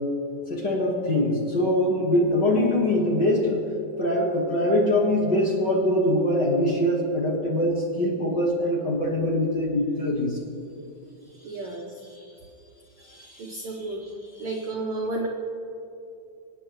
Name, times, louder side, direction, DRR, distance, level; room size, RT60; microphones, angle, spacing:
voice 1, 0.5-3.6 4.0-10.4 11.5-11.7 12.1-12.2 13.0-14.0, left 1 dB, 40° left, -3 dB, 1.8 m, -23 dB
voice 2, 11.4-11.9 13.4-14.0 14.4-15.3, right 2 dB, 65° right, -1 dB, 1.4 m, -31 dB
26.0 x 9.3 x 3.1 m, 2.6 s
omnidirectional pair, 3.6 m